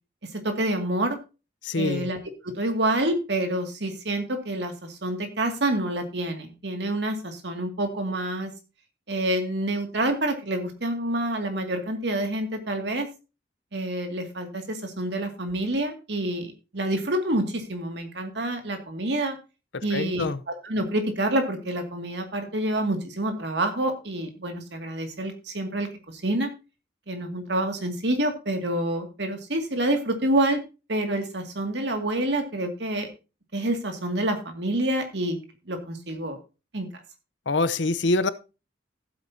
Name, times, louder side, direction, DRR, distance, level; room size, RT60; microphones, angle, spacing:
voice 1, 0.3-1.2 1.8-2.2 2.4-8.5 9.1-13.1 13.7-19.4 19.8-26.5 27.1-30.6 30.9-33.1 33.5-35.4 35.7-36.4 36.7-36.9, right 1 dB, 65° right, 2.2 m, -27 dB
voice 2, 1.6-2.1 19.7-20.4 37.5-38.3, left 3 dB, 80° left, 0.8 m, -25 dB
15.0 x 8.3 x 2.8 m
head